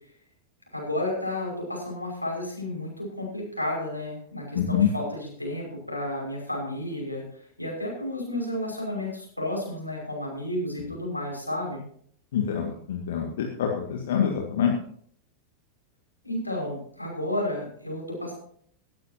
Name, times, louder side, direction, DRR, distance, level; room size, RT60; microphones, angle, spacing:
voice 1, 0.7-7.2 7.6-11.8 16.2-18.3, left 1 dB, 85° left, -1 dB, 5.9 m, -32 dB
voice 2, 4.6-4.9 12.3-14.8, left 8 dB, 60° left, 1 dB, 2.0 m, -25 dB
17.5 x 13.0 x 2.9 m, 0.62 s
figure-of-eight pair, 90°, 0 cm